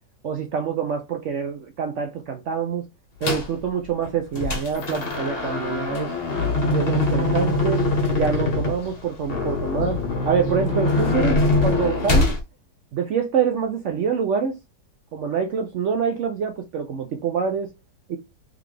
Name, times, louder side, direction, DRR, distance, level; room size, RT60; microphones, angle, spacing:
voice 1, 0.2-2.9 3.2-6.1 6.7-7.8 8.1-10.0 10.2-12.3 12.9-14.5 15.1-17.7 18.1-18.2, right 6 dB, 80° right, 0.6 m, -25 dB
sound 1, 3.2-3.6 4.0-12.4, left 2 dB, 40° left, 1.0 m, -23 dB
3.8 x 3.4 x 3.2 m
omnidirectional pair, 1.9 m